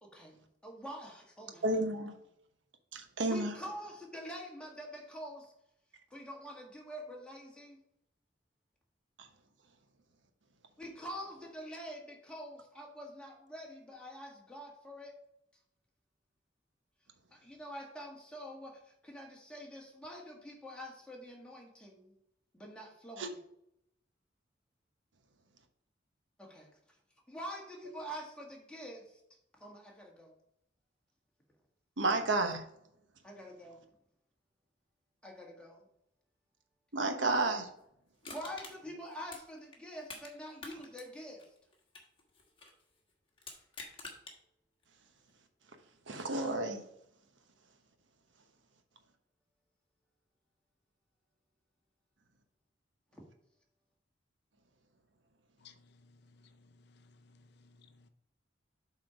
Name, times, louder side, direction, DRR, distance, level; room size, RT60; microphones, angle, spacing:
voice 1, 0.0-1.8 3.3-5.5 6.1-7.8 10.8-15.1 17.3-22.1 22.5-23.4 26.4-26.7 27.3-29.2 29.6-30.4 33.2-33.8 35.2-35.9 38.3-41.5 53.1-53.2, equal, 5° left, 1.7 m, -46 dB
voice 2, 1.6-2.1 2.9-3.5 9.2-9.3 23.2-23.3 32.0-32.6 36.9-37.7 46.1-46.8, right 2 dB, 80° right, 1.1 m, -31 dB
Crushing, 38.2-40.3 40.6-42.8 43.4-44.4 44.8-44.9, left 3 dB, 30° left, 1.4 m, -48 dB
voice 3, 55.6-58.1, left 4 dB, 60° left, 0.6 m, -61 dB
7.8 x 4.4 x 5.0 m
head